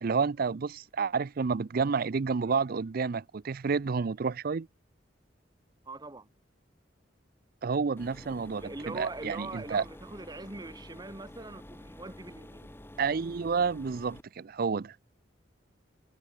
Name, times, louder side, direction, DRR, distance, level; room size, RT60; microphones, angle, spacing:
voice 1, 0.0-4.7 7.6-9.8 13.0-15.0, right 5 dB, 55° right, 0.5 m, -30 dB
voice 2, 5.9-6.3 8.5-12.7, right 2 dB, 20° right, 1.4 m, -42 dB
sound 1, 8.0-14.2, left 1 dB, 15° left, 1.5 m, -49 dB
head